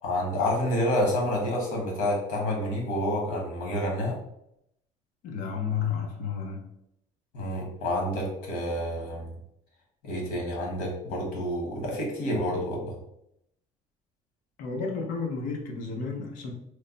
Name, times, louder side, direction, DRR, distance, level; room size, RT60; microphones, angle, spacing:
voice 1, 0.0-4.2 7.3-9.3 10.0-12.9, left 1 dB, 85° left, -1 dB, 1.4 m, -28 dB
voice 2, 5.2-6.6 14.6-16.5, left 5 dB, 65° left, 1 dB, 0.7 m, -31 dB
3.2 x 2.2 x 3.8 m, 0.79 s
cardioid pair, 170°, 14 cm